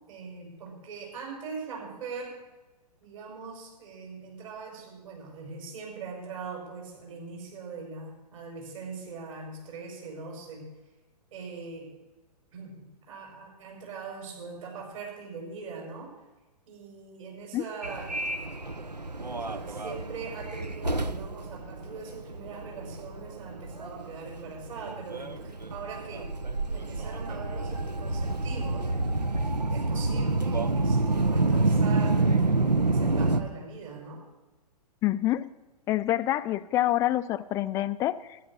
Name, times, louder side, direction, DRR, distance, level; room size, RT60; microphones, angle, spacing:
voice 1, 0.1-2.4 3.0-10.7 11.3-11.9 12.5-16.1 16.7-18.4 19.5-26.3 26.7-28.9 29.7-32.2 32.9-34.2, right 5 dB, 55° right, -1 dB, 6.1 m, -41 dB
Subway metro underground, 17.8-33.4, right 2 dB, 90° right, 0.8 m, -28 dB
voice 2, 35.0-35.5 35.9-38.4, left 14 dB, 15° left, 14 dB, 0.4 m, -27 dB
12.5 x 10.5 x 6.5 m, 1.1 s
figure-of-eight pair, 115°, 21 cm